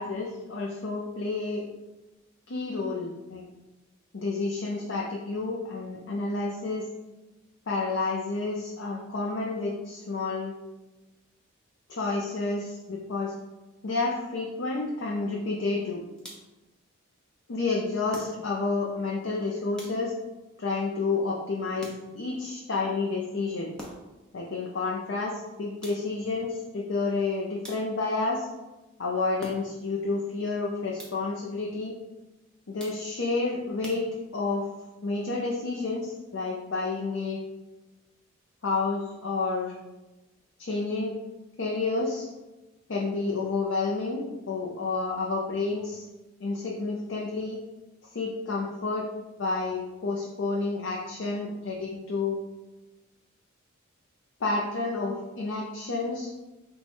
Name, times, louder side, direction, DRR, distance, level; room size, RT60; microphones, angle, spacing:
voice 1, 0.0-1.6 2.5-3.4 4.1-6.9 7.7-10.5 11.9-13.3 13.8-16.0 17.5-20.1 20.6-23.7 24.3-28.5 29.0-31.9 32.7-34.0 34.3-34.7 35.0-37.4 38.6-39.7 40.6-41.1 41.6-42.3 42.9-46.1 46.4-47.6 48.1-49.1 49.4-52.4 54.4-56.3, left 3 dB, 60° left, -3 dB, 0.5 m, -30 dB
sound 1, 16.2-16.7 18.1-18.8 19.8-20.4 21.8-22.4 23.8-24.3 25.8-26.3 27.6-28.2 29.4-30.0 31.0-31.4 32.8-33.3 33.8-34.6, equal, 5° left, 0.7 m, -46 dB
4.6 x 2.3 x 4.2 m, 1.1 s
head